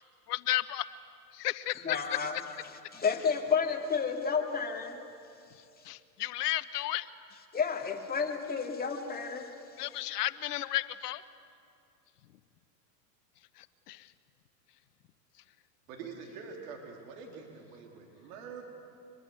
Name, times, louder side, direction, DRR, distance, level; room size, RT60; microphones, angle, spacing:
voice 1, 0.3-0.8 1.3-2.2 5.5-7.4 9.8-11.2 13.5-14.1, left 15 dB, 70° left, 14 dB, 1.1 m, -34 dB
voice 2, 1.8-2.4 2.9-5.0 7.5-9.5, left 6 dB, 20° left, 3 dB, 2.4 m, -31 dB
voice 3, 15.9-18.6, right 5 dB, 60° right, 1 dB, 3.8 m, -45 dB
24.5 x 21.5 x 8.0 m, 2.5 s
hypercardioid pair, 105°, 48 cm